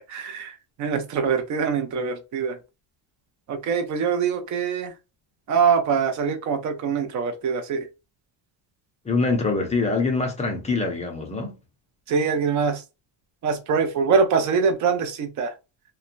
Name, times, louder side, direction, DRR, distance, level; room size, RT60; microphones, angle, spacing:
voice 1, 0.1-2.6 3.5-4.9 5.5-7.9 12.1-12.8 13.4-15.5, right 6 dB, 35° right, 0.6 m, -23 dB
voice 2, 9.0-11.6, left 3 dB, 15° left, 0.4 m, -24 dB
2.7 x 2.2 x 2.4 m
cardioid pair, 155°, 50 cm